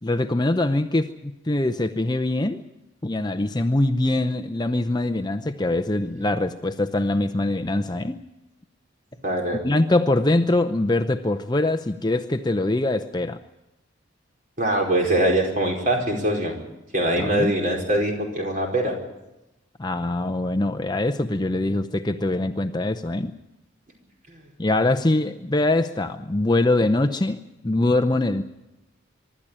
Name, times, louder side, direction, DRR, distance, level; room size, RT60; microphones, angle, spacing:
voice 1, 0.0-2.6 3.0-8.2 9.6-13.4 17.1-17.5 19.8-23.3 24.6-28.4, left 2 dB, 20° left, 8 dB, 0.6 m, -23 dB
voice 2, 9.2-9.6 14.6-16.6 16.9-18.9 24.3-24.4, right 1 dB, 40° right, 1 dB, 4.8 m, -23 dB
24.0 x 12.5 x 10.0 m, 0.97 s
head